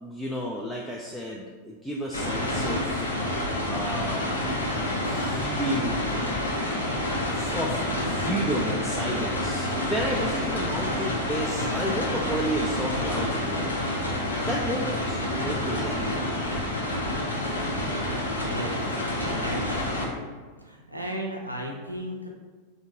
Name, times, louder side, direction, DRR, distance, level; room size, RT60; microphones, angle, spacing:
voice 1, 0.0-3.1 3.7-4.2 5.0-6.0 7.2-13.8 14.4-16.8, right 1 dB, ahead, -3 dB, 0.3 m, -32 dB
sound 1, 2.1-20.1, left 1 dB, 75° left, 0.6 m, -28 dB
voice 2, 18.3-19.0 19.4-20.3 20.6-22.3, equal, 85° right, -1 dB, 0.5 m, -35 dB
3.5 x 2.5 x 2.8 m, 1.4 s
figure-of-eight pair, 90°, 0 cm